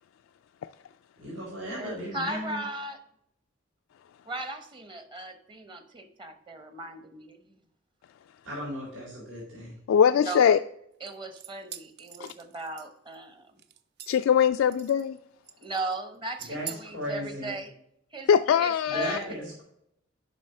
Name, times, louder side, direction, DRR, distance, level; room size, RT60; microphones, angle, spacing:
voice 1, 1.2-2.6 8.4-9.8 16.4-17.5 18.9-19.6, equal, 75° right, -5 dB, 3.9 m, -36 dB
voice 2, 1.7-3.0 4.2-7.6 10.2-10.6 11.0-13.5 15.6-17.7 18.1-18.3 18.6-19.3, right 2 dB, 25° right, 9 dB, 0.9 m, -37 dB
voice 3, 9.9-10.6 12.2-12.3 14.1-15.2 18.3-19.2, left 8 dB, 80° left, 9 dB, 0.3 m, -21 dB
sound 1, 11.1-13.2 13.6-14.3 14.7-15.2 15.5-15.9 16.4-16.8, right 9 dB, 55° right, 0.5 m, -44 dB
7.4 x 5.6 x 5.4 m, 0.76 s
head